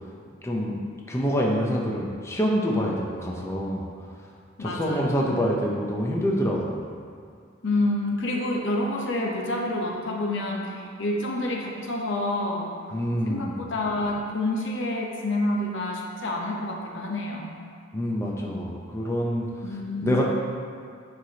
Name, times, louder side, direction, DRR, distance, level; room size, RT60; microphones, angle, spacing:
voice 1, 0.4-0.8 1.1-3.8 4.6-6.8 12.9-13.6 17.9-19.5 20.0-20.2, equal, 15° left, -2 dB, 0.6 m, -26 dB
voice 2, 4.6-5.3 7.6-12.7 13.3-17.5 19.6-20.2, left 2 dB, 65° left, 0 dB, 0.9 m, -28 dB
10.0 x 4.8 x 2.9 m, 2.3 s
head